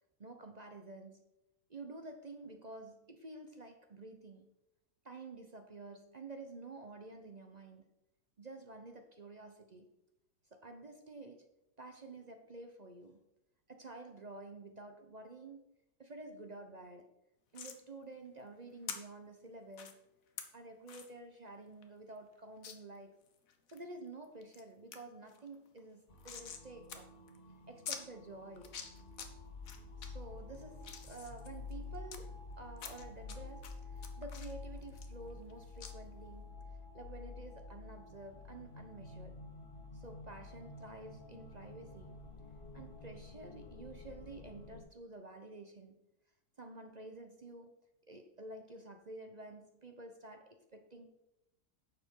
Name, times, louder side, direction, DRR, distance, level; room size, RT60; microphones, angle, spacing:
voice 1, 0.2-1.2 1.7-4.5 5.0-7.9 8.4-9.9 10.5-11.5 11.8-13.2 13.7-15.7 16.0-17.1 17.5-20.0 20.5-23.2 23.7-27.1 27.7-28.8 29.9-36.6 36.9-39.4 39.9-42.2 42.7-46.0 46.6-47.8 48.1-51.1, right 2 dB, 40° right, 6 dB, 0.6 m, -50 dB
sound 1, 17.5-17.8 18.9-19.0 19.7-19.9 20.4-20.5 20.9-21.1 21.5-21.6 21.8-21.9 22.6-22.8 23.3-23.8 24.2-24.6 24.9-25.0 25.3-26.6 26.9-27.0 27.3-27.4 27.9-28.0 28.6-29.3 29.6-30.1 30.5-32.2 32.8-33.4 33.6-35.5 35.8-35.9, left 7 dB, 60° left, 1.3 m, -46 dB
sound 2, 26.1-44.8, left 3 dB, 35° left, 1.2 m, -50 dB
10.5 x 6.9 x 4.5 m, 0.86 s
omnidirectional pair, 1.7 m